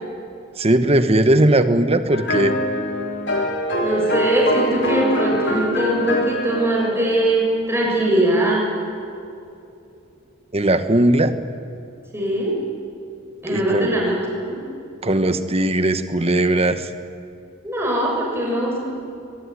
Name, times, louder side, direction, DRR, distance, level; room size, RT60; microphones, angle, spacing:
voice 1, 0.6-2.5 10.5-11.3 13.5-14.0 15.0-16.9, right 1 dB, 30° right, 9 dB, 1.2 m, -18 dB
sound 1, 2.1-7.1, equal, 60° left, 3.4 m, -24 dB
voice 2, 3.8-8.7 12.1-12.6 13.4-14.6 17.6-18.9, right 1 dB, 10° right, -3 dB, 7.1 m, -21 dB
22.5 x 21.0 x 9.8 m, 2.7 s
head